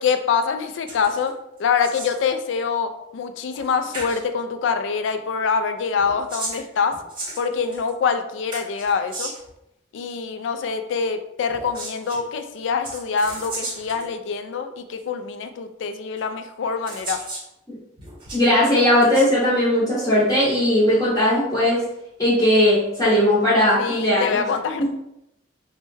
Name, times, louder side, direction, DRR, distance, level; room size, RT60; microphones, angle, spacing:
voice 1, 0.0-1.3 1.6-7.0 7.4-9.3 9.9-17.2 23.8-24.9, left 5 dB, 65° left, 8 dB, 0.3 m, -25 dB
sound 1, 0.9-1.3 1.6-2.3 3.5-3.7 3.9-4.2 6.0-7.9 8.5-9.5 11.5-12.2 12.8-14.1 15.0-15.1 16.2-16.3 16.9-17.5 18.0-18.5 18.9-19.3, right 2 dB, 25° right, 0.9 m, -34 dB
voice 2, 18.3-21.8 22.2-24.4 24.8-24.9, left 1 dB, 20° left, -9 dB, 0.7 m, -18 dB
3.2 x 2.1 x 3.1 m, 0.82 s
head